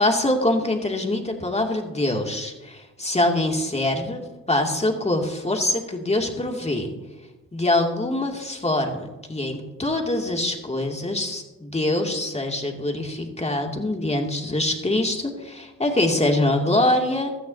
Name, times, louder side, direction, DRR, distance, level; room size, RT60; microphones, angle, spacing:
voice 1, 0.0-4.2 4.5-6.9 7.5-17.3, left 1 dB, 20° left, 2 dB, 2.7 m, -24 dB
16.5 x 13.5 x 2.9 m, 1.1 s
hypercardioid pair, 45°, 36 cm